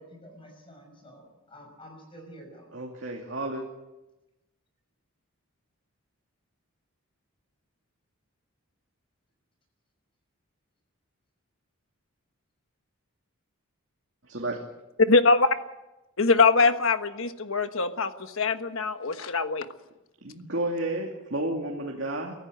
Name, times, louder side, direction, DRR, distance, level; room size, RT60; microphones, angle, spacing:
voice 1, 0.0-2.7, equal, 25° left, 2 dB, 6.0 m, -49 dB
voice 2, 2.7-3.6 14.3-14.6 20.2-22.3, right 1 dB, 55° right, 0 dB, 2.6 m, -31 dB
voice 3, 15.1-15.5 16.2-18.1 18.4-19.7, left 3 dB, 65° left, 9 dB, 1.3 m, -22 dB
24.0 x 14.5 x 7.9 m, 1.0 s
head